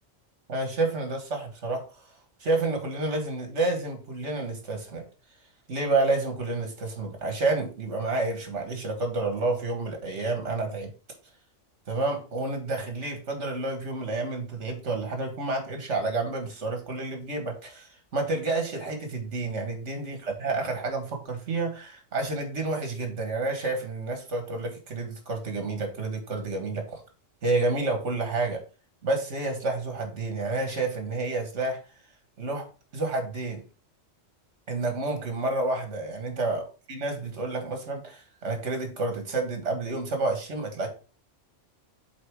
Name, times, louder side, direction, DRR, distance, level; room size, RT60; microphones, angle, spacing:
voice 1, 0.5-1.9 2.4-5.1 5.7-10.9 11.9-27.0 27.4-28.6 29.0-31.8 32.4-32.7 32.9-33.6 34.7-36.6 36.9-40.9, right 3 dB, 70° right, 1.9 m, -29 dB
7.7 x 4.0 x 3.6 m
omnidirectional pair, 1.2 m